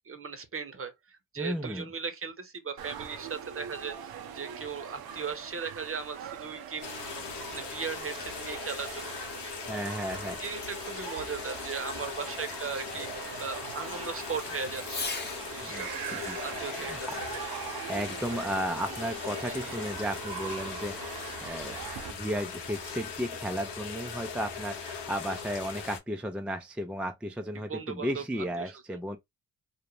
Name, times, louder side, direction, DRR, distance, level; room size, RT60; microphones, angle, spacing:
voice 1, 0.1-7.1 7.5-9.5 10.4-15.0 15.4-15.9 16.4-17.2 19.5-19.6 27.7-28.2 28.6-29.0, right 5 dB, 35° right, 0.8 m, -38 dB
voice 2, 1.4-1.9 9.7-10.4 15.6-16.4 16.7-17.2 17.9-21.0 21.4-21.8 22.1-29.2, equal, 5° right, 0.3 m, -34 dB
sound 1, 2.8-22.1, right 8 dB, 65° right, 0.6 m, -42 dB
Fireworks, 6.6-15.5 17.0-17.1 17.6-18.5, left 3 dB, 25° left, 0.8 m, -46 dB
sound 2, 6.8-26.0, left 6 dB, 80° left, 0.8 m, -40 dB
2.5 x 2.0 x 3.0 m
supercardioid pair, 50°, 40 cm